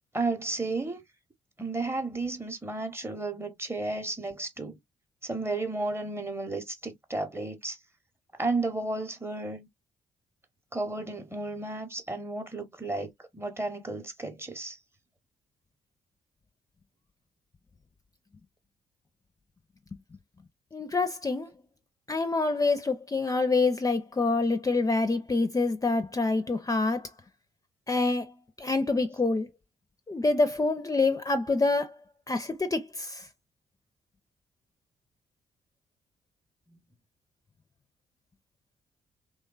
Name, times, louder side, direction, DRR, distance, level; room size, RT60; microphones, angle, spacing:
voice 1, 0.1-1.0 1.6-4.8 5.2-7.8 8.4-9.7 10.7-14.8, right 3 dB, 15° right, 0.8 m, -33 dB
voice 2, 20.7-21.5 22.1-27.0 27.9-28.3 28.6-29.5 30.1-31.9 32.3-32.8, left 3 dB, 20° left, 0.6 m, -26 dB
3.1 x 2.2 x 2.3 m
figure-of-eight pair, 40°, 16 cm